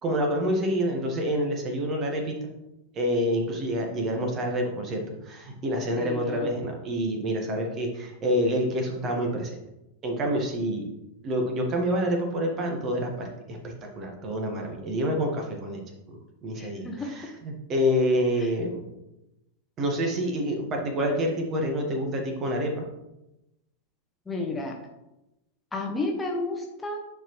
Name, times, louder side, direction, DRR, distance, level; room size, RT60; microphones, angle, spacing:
voice 1, 0.0-2.5 2.9-9.6 10.0-10.8 11.2-15.8 16.1-16.2 16.4-18.8 19.8-22.8, equal, 30° right, 2 dB, 1.5 m, -27 dB
voice 2, 6.0-6.5 16.6-17.1 18.4-18.5 24.3-24.8 25.7-27.0, left 2 dB, 15° left, 1 dB, 1.1 m, -32 dB
9.6 x 4.6 x 3.1 m, 0.92 s
figure-of-eight pair, 90°, 0 cm